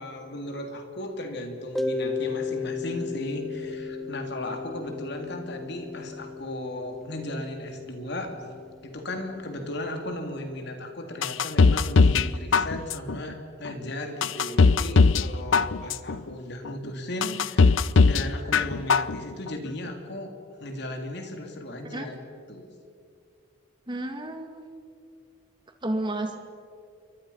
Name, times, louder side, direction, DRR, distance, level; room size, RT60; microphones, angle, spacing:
voice 1, 0.0-8.3 8.8-20.3 20.6-22.2 22.5-22.7, left 1 dB, 60° left, 4 dB, 3.2 m, -36 dB
Mallet percussion, 1.8-10.4, left 4 dB, ahead, 1.1 m, -35 dB
sound 1, 11.2-12.3 12.5-13.2 13.7-13.8 14.2-15.3 15.5-16.2 16.7-16.8 17.2-18.2 18.5-19.2 19.5-19.6, left 4 dB, 85° left, 0.7 m, -19 dB
voice 2, 23.9-24.6 25.8-26.4, right 1 dB, 25° right, 5 dB, 2.4 m, -31 dB
28.5 x 24.0 x 5.8 m, 2.3 s
head